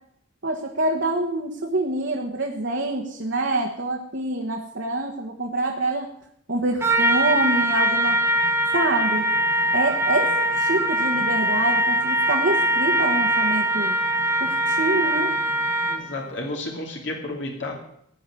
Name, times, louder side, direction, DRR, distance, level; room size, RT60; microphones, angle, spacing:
voice 1, 0.4-6.1 6.5-8.2 8.7-9.3 9.7-14.0 14.4-15.3, right 2 dB, 65° right, 0 dB, 1.6 m, -26 dB
Trumpet, 6.8-16.2, equal, 10° right, 1.2 m, -22 dB
voice 2, 15.9-17.7, left 2 dB, 65° left, 1 dB, 2.6 m, -31 dB
17.5 x 6.0 x 9.9 m, 0.72 s
head